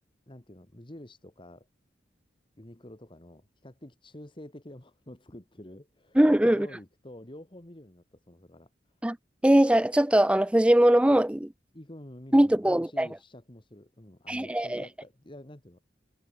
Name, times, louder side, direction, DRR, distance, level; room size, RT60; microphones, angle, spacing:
voice 1, 0.3-1.7 2.6-6.2 6.4-8.7 11.7-15.9, left 1 dB, 25° left, 1.7 m, -48 dB
voice 2, 6.2-6.7 9.0-9.2 9.4-11.5 12.3-13.1 14.3-14.8, right 1 dB, 5° right, 0.4 m, -21 dB
head